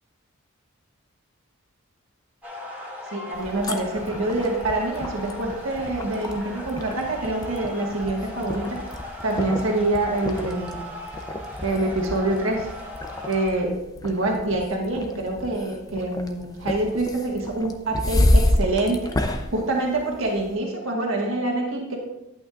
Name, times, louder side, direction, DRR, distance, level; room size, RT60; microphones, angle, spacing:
sound 1, 2.4-13.4, left 1 dB, 10° right, 2.2 m, -38 dB
voice 1, 3.1-8.8 9.2-10.9 11.6-12.7 13.3-13.7 14.0-19.1 19.5-22.0, right 2 dB, 70° right, -1 dB, 1.6 m, -26 dB
sound 2, 3.3-20.5, left 1 dB, 15° left, 0.5 m, -29 dB
11.5 x 8.5 x 2.5 m, 0.90 s
head